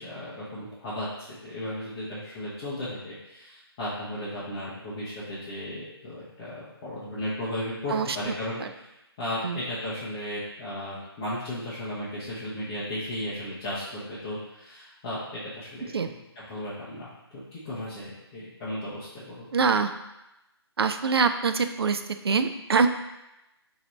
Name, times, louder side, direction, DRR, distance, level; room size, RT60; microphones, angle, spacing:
voice 1, 0.0-8.9 9.2-15.9 16.4-19.7, left 1 dB, 15° left, -10 dB, 0.6 m, -35 dB
voice 2, 7.9-8.3 8.6-8.7 9.4-9.6 15.9-16.1 19.5-19.9 20.8-22.9, right 5 dB, 65° right, 8 dB, 0.4 m, -24 dB
4.2 x 2.7 x 3.1 m, 0.93 s
figure-of-eight pair, 150°, 14 cm